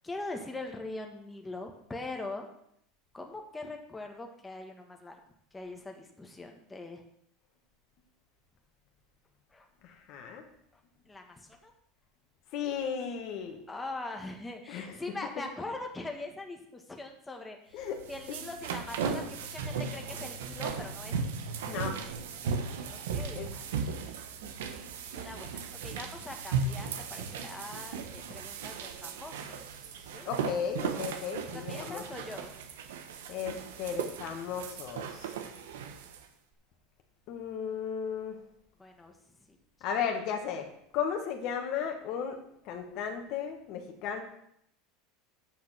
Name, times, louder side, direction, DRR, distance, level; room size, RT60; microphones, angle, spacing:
voice 1, 0.0-2.5 3.1-5.2 5.5-7.0 9.5-9.7 11.1-11.7 13.7-21.2 22.3-23.7 25.1-25.5 25.8-30.3 31.5-32.5 38.8-39.2, left 2 dB, 10° left, 3 dB, 1.5 m, -42 dB
voice 2, 9.8-10.5 12.5-13.6 14.7-14.9 17.7-18.0 21.7-22.0 23.4-23.5 24.4-24.5 30.3-32.0 33.3-35.3 37.3-38.4 39.8-40.7 40.9-42.4 42.7-44.2, left 7 dB, 55° left, 4 dB, 1.7 m, -35 dB
sound 1, 17.8-36.2, right 5 dB, 85° right, 1.1 m, -37 dB
8.7 x 6.0 x 6.0 m, 0.71 s
supercardioid pair, 110°, 0 cm